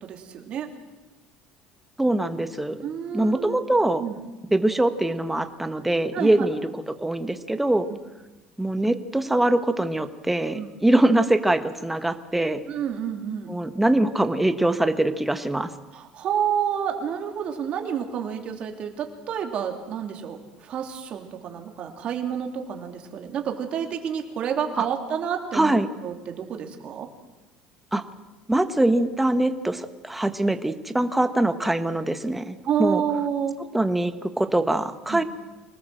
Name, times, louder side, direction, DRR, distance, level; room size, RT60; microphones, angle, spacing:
voice 1, 0.0-0.7 2.8-3.6 4.0-4.2 6.1-6.5 10.5-10.7 12.7-13.5 15.9-25.8 26.0-27.1 32.6-33.5 35.1-35.2, right 8 dB, 45° right, 4 dB, 3.0 m, -29 dB
voice 2, 2.0-2.8 3.1-4.0 4.5-6.6 6.9-7.9 8.6-12.6 13.5-15.7 24.8-24.9 25.5-25.9 27.9-28.0 28.5-33.0 33.7-35.2, right 1 dB, 5° right, 10 dB, 1.2 m, -23 dB
25.5 x 18.5 x 7.7 m, 1.2 s
cardioid pair, 145°, 3 cm